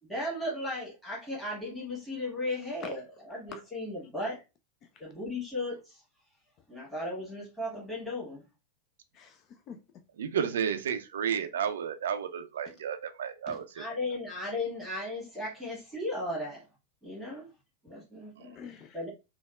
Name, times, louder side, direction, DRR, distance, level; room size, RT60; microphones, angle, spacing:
voice 1, 0.0-3.0 3.3-4.4 5.0-6.0 6.7-8.4 13.7-16.6 17.0-17.5 17.8-18.6 18.9-19.1, left 1 dB, ahead, 1.3 m, -36 dB
voice 2, 2.8-3.2 3.5-3.6 4.8-5.0 9.1-9.8 12.6-12.7 13.5-13.6 18.5-19.0, left 6 dB, 35° left, 0.3 m, -46 dB
voice 3, 10.2-13.8 18.4-18.5, right 8 dB, 60° right, 0.3 m, -32 dB
3.3 x 2.3 x 2.3 m
figure-of-eight pair, 90°, 0 cm